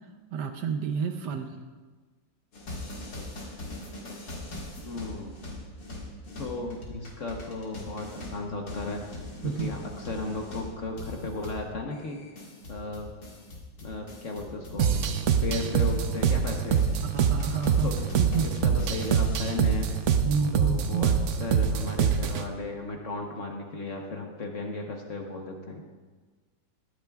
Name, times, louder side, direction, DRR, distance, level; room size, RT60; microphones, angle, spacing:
voice 1, 0.3-1.6 9.4-9.7 17.1-17.9 18.2-18.5 20.2-21.1, right 6 dB, 70° right, 6 dB, 1.2 m, -29 dB
sound 1, 2.5-15.2 15.5-19.9, left 1 dB, 65° left, 2.4 m, -41 dB
voice 2, 4.8-5.4 6.4-12.2 12.7-13.1 13.8-16.9 17.5-17.9 18.4-19.9 20.5-25.8, left 2 dB, 50° left, 1 dB, 1.1 m, -35 dB
sound 2, 14.8-22.5, right 7 dB, 90° right, 0.6 m, -25 dB
21.0 x 8.7 x 2.3 m, 1.4 s
omnidirectional pair, 2.1 m